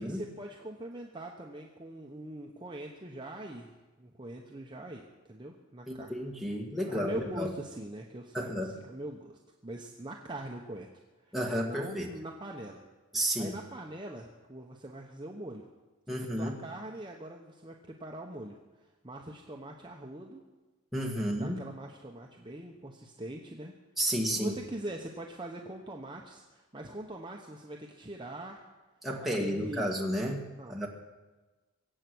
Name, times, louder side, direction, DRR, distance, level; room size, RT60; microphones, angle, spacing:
voice 1, 0.0-3.7 4.0-6.5 6.8-10.9 11.2-12.8 13.4-15.7 16.1-20.4 21.2-23.7 24.3-28.7 29.2-29.9 30.6-30.9, right 1 dB, 20° right, 0 dB, 0.9 m, -43 dB
voice 2, 5.9-7.5 8.3-8.8 11.3-12.1 13.1-13.5 16.1-16.6 20.9-21.6 24.0-24.6 29.0-30.4 30.7-30.9, equal, ahead, -2 dB, 1.7 m, -32 dB
23.0 x 8.3 x 6.2 m, 1.2 s
head